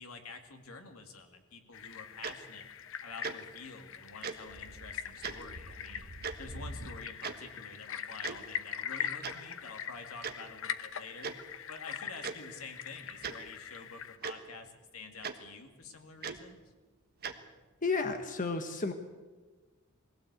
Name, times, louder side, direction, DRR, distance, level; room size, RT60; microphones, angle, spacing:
voice 1, 0.0-2.6 3.0-6.1 6.4-11.3 11.7-16.6, left 4 dB, 85° left, 5 dB, 2.4 m, -48 dB
sound 1, 1.7-14.2, left 8 dB, 65° left, 0.9 m, -42 dB
Tick-tock, 2.2-2.3 3.2-3.3 4.2-4.3 5.2-5.4 6.2-6.3 7.2-7.3 8.2-8.4 9.2-9.3 10.2-10.3 11.2-11.3 12.2-12.3 13.2-13.4 14.2-14.3 15.2-15.3 16.2-16.4 17.2-17.3, right 6 dB, 50° right, 1.4 m, -37 dB
sound 2, 4.1-7.0, equal, 75° right, 1.6 m, -47 dB
voice 2, 17.8-18.9, left 4 dB, 40° left, 6 dB, 1.3 m, -32 dB
21.0 x 16.5 x 8.2 m, 1.3 s
head